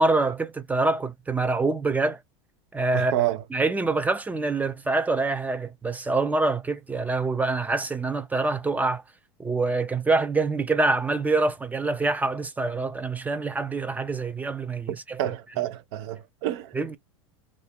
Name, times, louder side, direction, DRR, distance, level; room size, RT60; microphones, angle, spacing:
voice 1, 0.0-2.2 2.7-3.2 3.5-9.0 9.4-15.2 16.7-17.0, right 3 dB, 10° right, 0.5 m, -25 dB
voice 2, 2.9-3.4 14.9-16.7, right 14 dB, 65° right, 0.6 m, -29 dB
2.6 x 2.2 x 3.4 m
hypercardioid pair, 105°, 15 cm